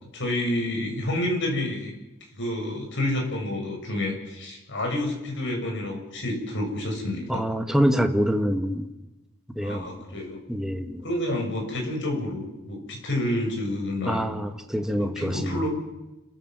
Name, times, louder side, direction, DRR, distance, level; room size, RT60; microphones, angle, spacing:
voice 1, 0.1-1.9 2.4-7.4 9.6-10.4 11.0-14.3 14.9-15.7, left 1 dB, 60° left, 2 dB, 7.2 m, -29 dB
voice 2, 7.3-8.9 9.5-9.8 10.5-11.0 14.0-15.6, equal, 5° right, 5 dB, 1.5 m, -25 dB
29.5 x 14.5 x 7.9 m, 1.0 s
head